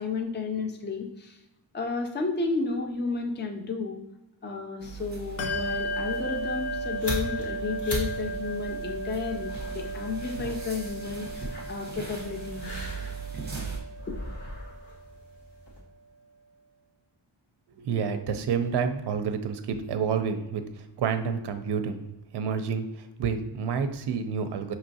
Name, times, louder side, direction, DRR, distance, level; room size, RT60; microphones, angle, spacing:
voice 1, 0.0-1.4 1.7-4.0 4.4-12.7 14.1-14.2, left 4 dB, 25° left, 3 dB, 0.4 m, -32 dB
sound 1, 4.8-13.8, right 5 dB, 20° right, 0.9 m, -40 dB
Bell, 5.4-15.4, right 1 dB, 75° left, 0.8 m, -36 dB
sound 2, 6.6-15.8, equal, 55° left, 1.4 m, -40 dB
voice 2, 17.8-22.0 22.3-24.7, right 6 dB, 55° right, 8 dB, 0.5 m, -29 dB
5.4 x 2.9 x 2.7 m, 0.93 s
wide cardioid pair, 175°, 48 cm